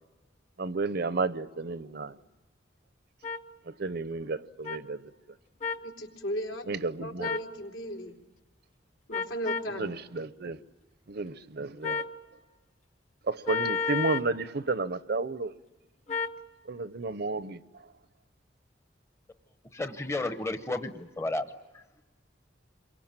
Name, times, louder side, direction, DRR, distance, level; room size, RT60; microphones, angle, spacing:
voice 1, 0.6-2.2 3.7-5.0 6.7-7.4 9.8-10.6 11.1-12.1 13.3-15.5 16.6-17.6, right 3 dB, 60° right, 0.8 m, -32 dB
sound 1, 3.2-3.4 4.6-4.8 5.6-5.9 7.2-7.5 9.1-9.7 11.8-12.1 13.5-14.3 16.1-16.4, left 5 dB, 40° left, 1.1 m, -31 dB
voice 2, 5.8-6.7 7.0-8.2 9.1-9.9, equal, 80° left, 3.8 m, -36 dB
voice 3, 19.7-22.0, left 2 dB, 15° left, 0.9 m, -33 dB
28.0 x 23.0 x 9.0 m
head